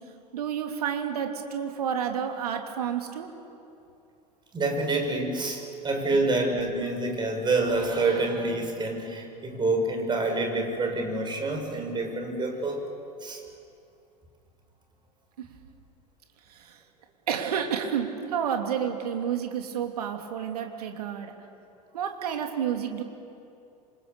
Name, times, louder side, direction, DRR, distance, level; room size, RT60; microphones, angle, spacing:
voice 1, 0.3-3.3 6.1-6.2 15.4-15.5 16.5-16.8 17.3-21.3 21.9-23.0, right 8 dB, 65° right, 4 dB, 2.9 m, -30 dB
voice 2, 4.5-12.9 13.2-13.4, right 2 dB, 20° right, 3 dB, 6.1 m, -27 dB
27.0 x 27.0 x 6.9 m, 2.6 s
figure-of-eight pair, 80°, 21 cm